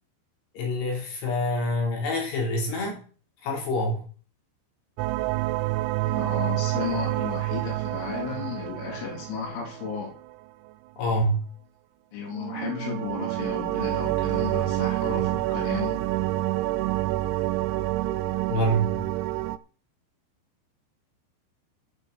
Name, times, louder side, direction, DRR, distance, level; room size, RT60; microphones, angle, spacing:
voice 1, 0.6-3.0 3.4-4.1 11.0-11.5 18.5-18.9, equal, 65° left, 5.4 m, -26 dB
sound 1, 5.0-10.3 12.3-19.6, right 17 dB, 85° right, 3.0 m, -28 dB
voice 2, 6.0-10.1 12.1-16.0, left 6 dB, 85° left, 5.9 m, -34 dB
10.5 x 6.8 x 8.0 m
omnidirectional pair, 5.4 m